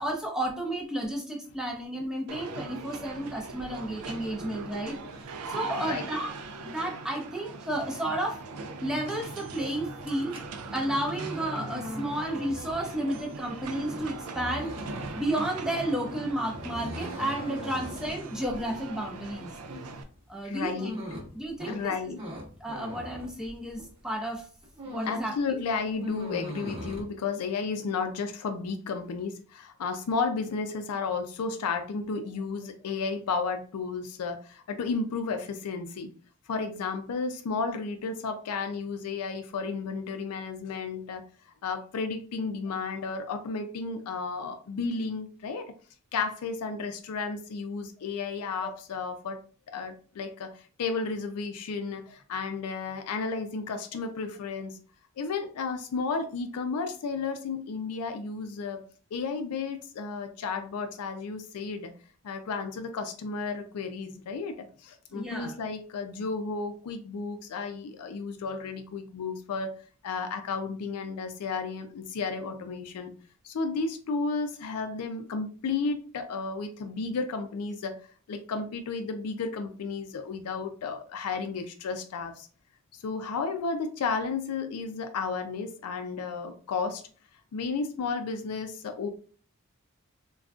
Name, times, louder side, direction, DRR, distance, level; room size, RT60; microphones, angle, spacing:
voice 1, 0.0-5.0 5.5-6.3 6.7-8.4 8.8-10.4 10.7-14.7 15.2-19.5 20.3-20.9 21.3-22.0 22.6-24.5 24.9-25.6 48.6-48.7 65.1-65.6, right 1 dB, 5° right, 0 dB, 0.5 m, -32 dB
sound 1, 2.3-20.0, right 3 dB, 80° right, 0.4 m, -40 dB
sound 2, 10.0-24.0 24.4-25.3 25.6-27.0, equal, 25° right, 0.8 m, -40 dB
voice 2, 20.4-21.0 21.7-22.2 25.1-36.1 36.5-41.2 41.6-45.7 46.1-49.4 49.7-50.5 50.8-54.7 55.2-58.8 59.1-61.9 62.2-69.7 70.0-73.1 73.4-78.0 78.3-82.5 82.9-87.0 87.5-89.1, left 4 dB, 90° left, 7 dB, 0.4 m, -33 dB
3.6 x 2.3 x 2.3 m, 0.41 s
head